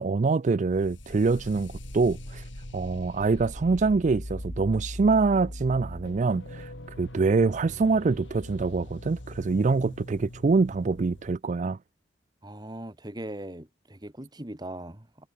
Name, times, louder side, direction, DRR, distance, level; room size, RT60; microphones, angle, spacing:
voice 1, 0.0-2.4 2.7-6.7 7.0-11.8, right 4 dB, 40° right, 0.4 m, -25 dB
sound 1, 0.7-11.3, left 1 dB, 70° left, 4.0 m, -41 dB
voice 2, 12.4-15.3, right 1 dB, 20° right, 1.9 m, -40 dB
head